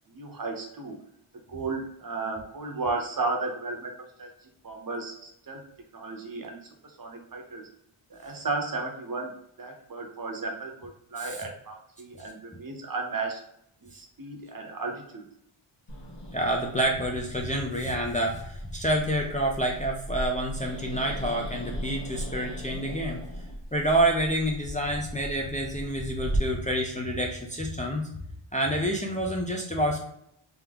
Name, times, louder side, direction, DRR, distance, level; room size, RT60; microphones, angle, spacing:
voice 1, 0.1-1.0 1.5-4.3 4.6-5.6 5.9-6.6 7.0-7.7 8.1-9.3 9.6-13.4 13.8-15.2, right 3 dB, 45° right, 2 dB, 0.8 m, -34 dB
Growling, 15.9-26.4, equal, 60° left, 1.3 m, -38 dB
voice 2, 16.3-23.2 23.7-28.0 28.5-30.0, right 1 dB, 15° left, -1 dB, 0.5 m, -28 dB
3.6 x 2.8 x 3.4 m, 0.76 s
wide cardioid pair, 165°, 50 cm